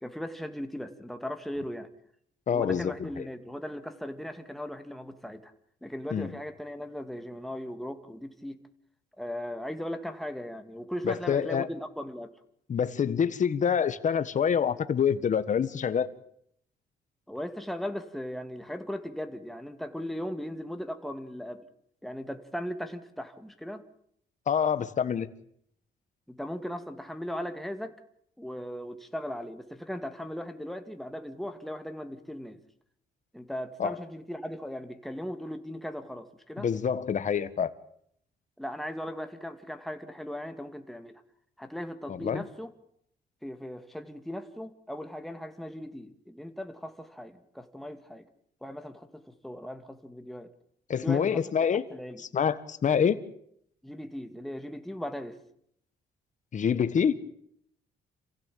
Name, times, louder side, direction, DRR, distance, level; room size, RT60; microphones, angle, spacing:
voice 1, 0.0-1.9 2.5-5.5 5.8-8.6 9.2-12.3 17.3-21.6 22.0-23.8 26.3-28.0 28.4-32.6 33.3-36.7 38.6-41.2 41.6-42.7 43.4-48.3 48.6-50.5 51.0-51.4 51.9-52.2 53.8-55.4, equal, ahead, 6 dB, 2.2 m, -38 dB
voice 2, 2.5-3.2 6.1-6.3 11.0-11.7 12.7-16.1 24.5-25.3 33.8-33.9 36.6-37.7 42.1-42.4 50.9-51.8 52.3-53.2 56.5-57.1, left 7 dB, 45° left, 12 dB, 1.5 m, -26 dB
27.5 x 16.0 x 8.6 m, 0.70 s
cardioid pair, 100°, 17 cm